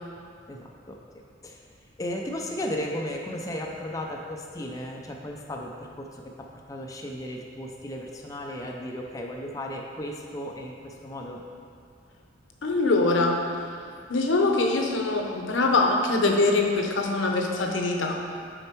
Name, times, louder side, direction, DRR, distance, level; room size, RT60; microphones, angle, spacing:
voice 1, 0.5-1.0 1.4-1.6 2.0-11.4, left 1 dB, 20° left, 0 dB, 0.5 m, -35 dB
voice 2, 12.6-13.4 14.1-18.2, left 3 dB, 80° left, 2 dB, 0.7 m, -23 dB
6.4 x 4.4 x 4.5 m, 2.4 s
head